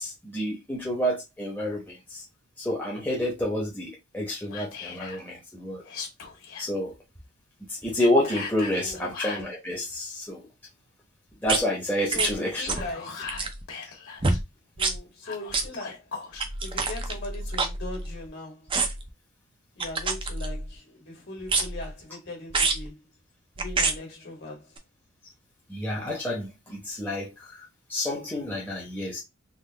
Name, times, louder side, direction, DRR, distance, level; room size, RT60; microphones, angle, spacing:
voice 1, 0.0-2.2 2.6-5.8 6.6-6.9 7.8-10.4 11.4-12.8 25.7-27.6 27.9-29.2, left 1 dB, 10° left, 0.9 m, -29 dB
Whispering, 4.5-5.2 5.8-6.7 8.2-9.5 12.5-14.4 15.2-16.5, left 5 dB, 80° left, 1.6 m, -39 dB
voice 2, 8.8-9.2 12.0-13.4 14.8-16.1 16.6-18.7 19.8-23.0 23.6-24.7, left 2 dB, 50° left, 1.7 m, -39 dB
sound 1, 11.5-11.6 12.1-12.3 12.7-12.9 13.2-13.6 14.2-14.4 14.8-15.0 15.5-15.7 16.4-18.3 18.7-19.1 19.8-20.7 21.4-21.9 22.5-22.9 23.6-24.0 24.8-24.9, right 3 dB, 25° right, 0.5 m, -27 dB
3.8 x 2.3 x 3.3 m
head